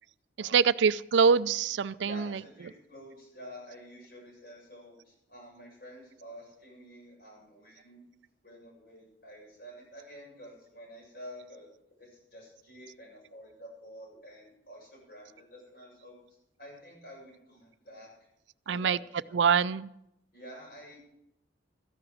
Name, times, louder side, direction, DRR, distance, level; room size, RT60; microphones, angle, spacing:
voice 1, 0.4-2.4 18.7-19.0 19.3-19.9, right 6 dB, 75° right, 17 dB, 0.4 m, -24 dB
voice 2, 2.0-8.1 8.4-11.7 12.0-16.2 16.6-18.1 18.6-19.0 20.3-21.0, equal, 55° left, -2 dB, 7.5 m, -49 dB
14.0 x 11.0 x 6.3 m, 0.80 s
head